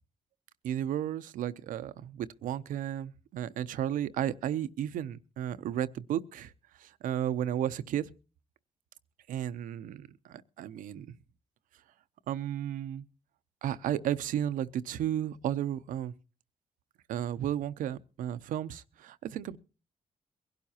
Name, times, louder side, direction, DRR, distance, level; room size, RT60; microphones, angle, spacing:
voice 1, 0.6-6.5 6.8-8.1 9.3-11.1 12.3-13.0 13.6-16.1 17.1-19.6, right 11 dB, 90° right, 0.6 m, -33 dB
22.5 x 12.0 x 2.8 m
cardioid pair, 70°, 13 cm